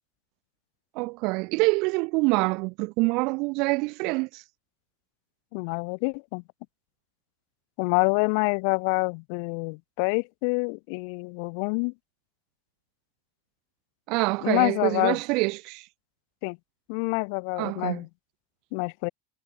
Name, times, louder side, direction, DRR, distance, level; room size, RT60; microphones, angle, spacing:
voice 1, 0.9-4.4 14.1-15.9 17.6-18.0, right 27 dB, 55° right, 4.9 m, -26 dB
voice 2, 5.5-6.4 7.8-11.9 14.4-15.2 16.4-16.6 16.9-18.1 18.7-19.1, left 39 dB, 60° left, 2.0 m, -27 dB
supercardioid pair, 120°, 0 cm